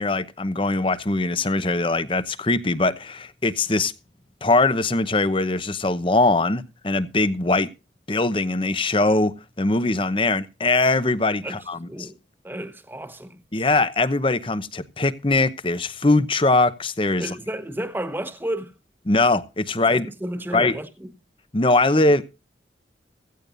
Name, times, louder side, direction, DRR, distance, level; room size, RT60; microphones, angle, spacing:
voice 1, 0.0-3.9 4.4-7.7 8.1-12.1 13.5-17.3 19.1-20.1 20.5-20.8 21.5-22.2, left 2 dB, 30° left, 0.8 m, -21 dB
voice 2, 12.4-13.4 17.2-18.7 19.9-21.1, right 1 dB, 10° right, 1.2 m, -32 dB
16.0 x 15.5 x 2.6 m
head